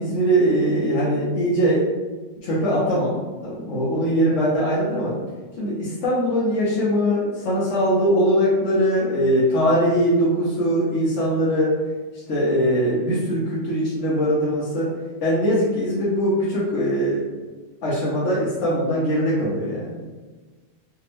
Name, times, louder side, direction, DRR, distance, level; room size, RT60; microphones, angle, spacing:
voice 1, 0.0-1.9 2.4-5.2 5.6-11.7 12.3-14.9 15.2-17.3 17.8-20.0, equal, 65° left, -8 dB, 1.0 m, -21 dB
3.3 x 2.0 x 3.0 m, 1.3 s
omnidirectional pair, 1.4 m